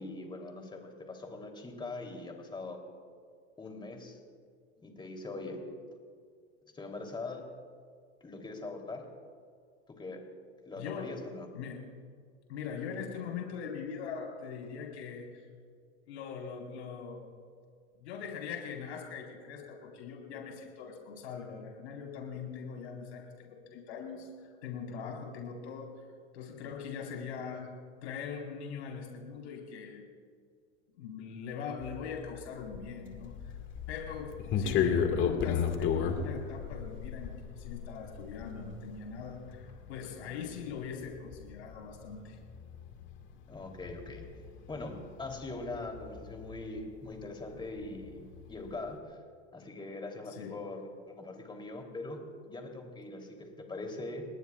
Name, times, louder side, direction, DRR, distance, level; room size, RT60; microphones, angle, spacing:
voice 1, 0.0-2.8 3.6-4.2 4.8-5.6 6.7-7.4 8.2-9.0 9.9-10.2 10.6-11.5 43.5-44.3 44.7-44.9 45.2-49.0 49.5-54.2, left 2 dB, 15° left, 2 dB, 3.2 m, -42 dB
voice 2, 10.8-11.1 11.5-11.8 12.5-15.3 16.1-17.3 17.9-26.0 26.3-27.7 28.0-30.0 31.0-33.5 33.9-42.4 50.3-50.5, left 6 dB, 75° left, 0 dB, 4.4 m, -41 dB
sound 1, 31.8-47.3 47.6-48.9, left 7 dB, 35° left, 1.9 m, -35 dB
29.0 x 19.5 x 2.4 m, 2.1 s
hypercardioid pair, 110°, 34 cm